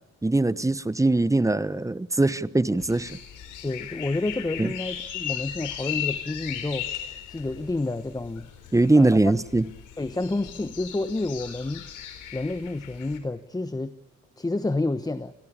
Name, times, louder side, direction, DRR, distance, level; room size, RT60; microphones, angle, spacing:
voice 1, 0.2-3.2 4.6-4.7 8.7-9.7, right 2 dB, 10° right, 17 dB, 0.9 m, -21 dB
sound 1, 2.8-13.2, left 10 dB, 85° left, 4.0 m, -37 dB
voice 2, 3.6-8.5 8.9-9.4 10.0-11.8 12.3-13.9 14.4-15.3, left 2 dB, 15° left, 12 dB, 1.1 m, -29 dB
28.0 x 18.0 x 8.7 m, 0.93 s
cardioid pair, 90°, 30 cm